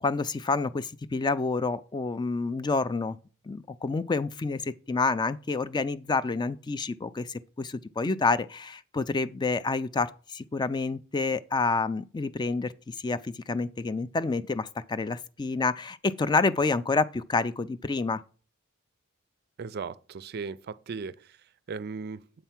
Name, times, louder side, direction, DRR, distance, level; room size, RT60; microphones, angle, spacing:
voice 1, 0.0-3.2 3.5-18.2, left 3 dB, 20° left, 0.3 m, -28 dB
voice 2, 19.6-21.4 21.7-22.2, right 5 dB, 50° right, 0.4 m, -37 dB
7.7 x 4.5 x 5.8 m
head